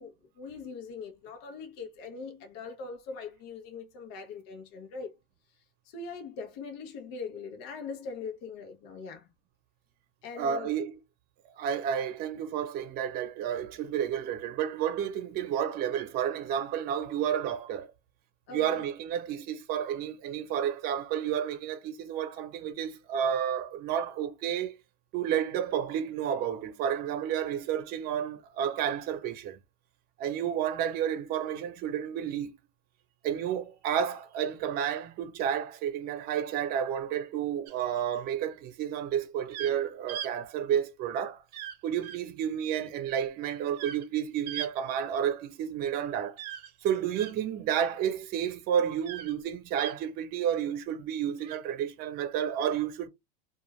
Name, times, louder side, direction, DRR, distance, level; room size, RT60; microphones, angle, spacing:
voice 1, 0.0-5.1 5.9-9.3 10.2-10.7 18.5-18.8, left 4 dB, 65° left, 0.8 m, -41 dB
voice 2, 10.3-10.9 11.6-17.9 18.5-24.8 25.1-29.6 30.2-32.5 33.2-41.4 41.8-46.4 46.8-53.1, right 9 dB, 50° right, 0.8 m, -31 dB
sound 1, 37.7-38.2 39.5-39.7 40.1-40.3 41.5-41.8 42.0-42.2 43.7-44.1 44.5-44.7 46.4-47.3 49.0-49.3 49.8-49.9 51.4-51.6, right 10 dB, 90° right, 0.6 m, -39 dB
2.3 x 2.3 x 3.1 m
supercardioid pair, 130°, 21 cm